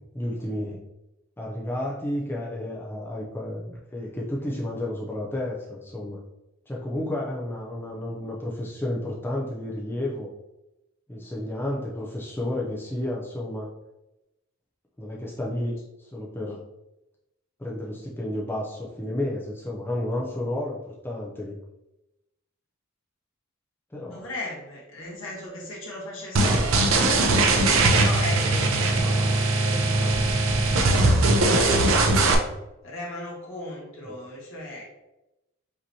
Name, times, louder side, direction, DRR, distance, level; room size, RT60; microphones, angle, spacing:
voice 1, 0.1-0.8 1.4-6.2 6.7-10.3 11.1-13.7 15.0-16.6 17.6-21.6 23.9-24.3 34.0-34.2, left 1 dB, 10° left, -4 dB, 0.5 m, -31 dB
voice 2, 24.0-27.4 27.9-30.2 30.7-32.3 32.8-34.8, left 2 dB, 70° left, -5 dB, 1.5 m, -37 dB
sound 1, 26.4-32.4, right 2 dB, 80° right, 0.6 m, -20 dB
5.2 x 2.9 x 2.7 m, 0.94 s
head